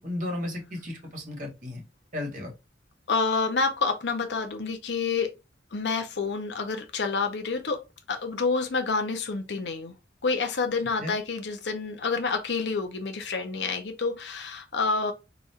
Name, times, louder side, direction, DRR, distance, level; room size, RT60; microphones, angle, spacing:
voice 1, 0.0-1.8 2.1-2.5 11.0-11.1, left 1 dB, 45° right, 1.5 m, -34 dB
voice 2, 3.1-5.3 5.7-7.8 8.1-9.9 10.2-15.1, left 4 dB, 70° left, 0.6 m, -28 dB
4.0 x 2.4 x 4.2 m
head